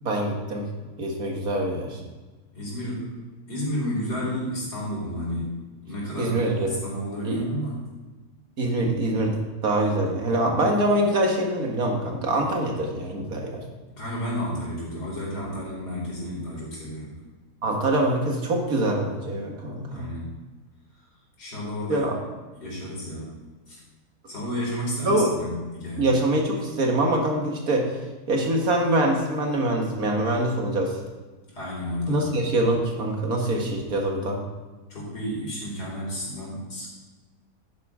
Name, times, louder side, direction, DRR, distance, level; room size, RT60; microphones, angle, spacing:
voice 1, 0.0-0.7 1.0-2.0 6.2-6.7 7.2-7.4 8.6-9.4 9.6-13.6 17.6-20.1 21.9-22.1 25.1-25.3 26.0-27.9 28.3-31.0 32.1-34.4, right 1 dB, 65° right, 1 dB, 2.0 m, -24 dB
voice 2, 2.5-3.1 3.5-5.5 5.8-7.8 14.0-17.1 19.9-20.3 21.4-22.1 22.5-23.4 23.7-23.8 24.3-26.1 31.5-32.2 34.9-36.9, equal, 85° left, -5 dB, 4.5 m, -31 dB
11.0 x 9.8 x 3.7 m, 1.2 s
omnidirectional pair, 1.7 m